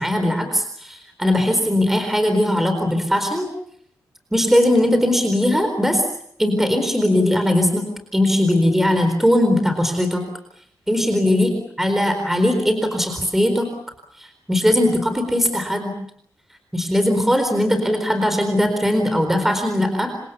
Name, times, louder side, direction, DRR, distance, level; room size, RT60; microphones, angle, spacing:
voice 1, 0.0-3.5 4.3-6.0 6.4-7.9 8.1-10.2 10.9-11.5 11.8-13.7 14.2-15.9 16.7-20.1, left 1 dB, 5° right, 6 dB, 4.2 m, -19 dB
28.0 x 26.0 x 7.0 m, 0.68 s
wide cardioid pair, 155°, 6 cm